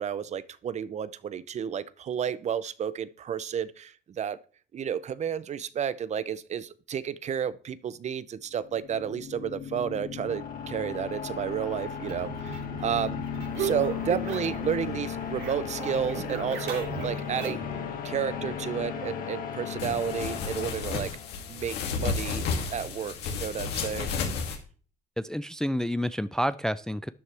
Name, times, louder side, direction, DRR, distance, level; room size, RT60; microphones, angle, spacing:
voice 1, 0.0-4.4 4.7-13.2 13.6-17.6 18.0-21.1 21.5-24.1, right 8 dB, 45° right, 17 dB, 0.7 m, -31 dB
sound 1, 8.6-21.5, left 7 dB, 55° left, 2.0 m, -36 dB
sound 2, 12.0-14.7 15.0-17.8, right 7 dB, 75° right, 2.7 m, -37 dB
sound 3, 19.8-24.6, left 5 dB, 80° left, 2.6 m, -32 dB
voice 2, 25.2-27.1, equal, 5° left, 15 dB, 0.4 m, -29 dB
12.5 x 9.6 x 3.4 m, 0.42 s
cardioid pair, 110°, 17 cm